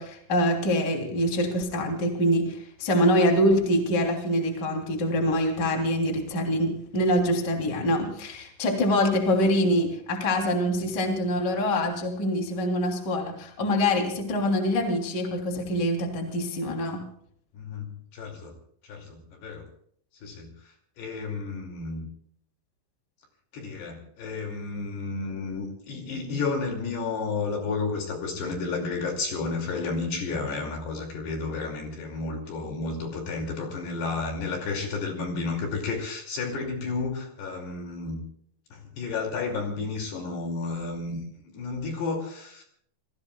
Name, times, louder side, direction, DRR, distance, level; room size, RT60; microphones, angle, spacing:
voice 1, 0.0-17.0, equal, 25° left, 2 dB, 3.1 m, -25 dB
voice 2, 17.5-18.5 18.9-19.7 20.2-20.5 21.0-22.1 23.5-38.3 38.7-41.2 41.5-42.6, left 4 dB, 60° left, 2 dB, 4.4 m, -32 dB
29.0 x 19.0 x 2.4 m, 0.63 s
omnidirectional pair, 5.8 m